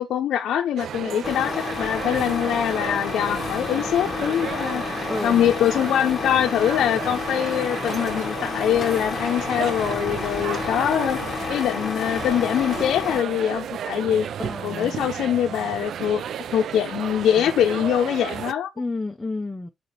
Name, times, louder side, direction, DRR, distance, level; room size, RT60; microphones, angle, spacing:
voice 1, 0.0-4.8 5.2-11.2 11.5-14.3 14.6-16.2 16.5-18.7, left 10 dB, 90° left, 0.6 m, -23 dB
sound 1, 0.8-18.5, right 9 dB, 70° right, 0.3 m, -33 dB
Truck, 1.2-13.2, left 5 dB, 45° left, 0.9 m, -30 dB
voice 2, 5.1-5.5 14.4-15.0 18.8-19.7, left 2 dB, 10° left, 0.7 m, -30 dB
6.6 x 4.2 x 4.1 m
cardioid pair, 110°, 0 cm